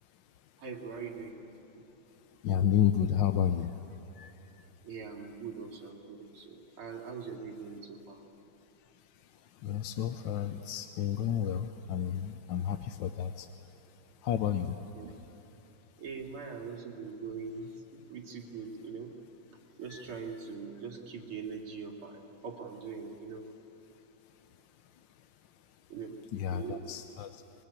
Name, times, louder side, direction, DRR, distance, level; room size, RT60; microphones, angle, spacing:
voice 1, 0.6-1.4 4.8-8.2 14.9-15.1 16.0-19.1 19.8-23.5 25.9-26.2 26.5-26.9, right 5 dB, 85° right, 0 dB, 3.4 m, -42 dB
voice 2, 2.4-3.7 4.2-4.3 9.6-13.5 14.2-14.8 19.9-20.0 26.3-27.4, left 9 dB, 70° left, 8 dB, 1.4 m, -31 dB
25.5 x 22.5 x 8.5 m, 3.0 s
omnidirectional pair, 2.3 m